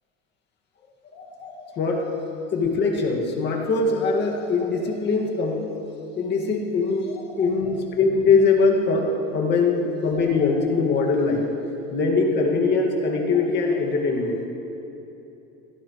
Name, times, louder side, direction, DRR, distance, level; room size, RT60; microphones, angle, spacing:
voice 1, 1.1-2.1 2.5-5.6 6.2-11.5 11.9-14.5, left 4 dB, 35° left, -1 dB, 2.0 m, -22 dB
23.0 x 17.5 x 3.2 m, 2.9 s
cardioid pair, 165°, 32 cm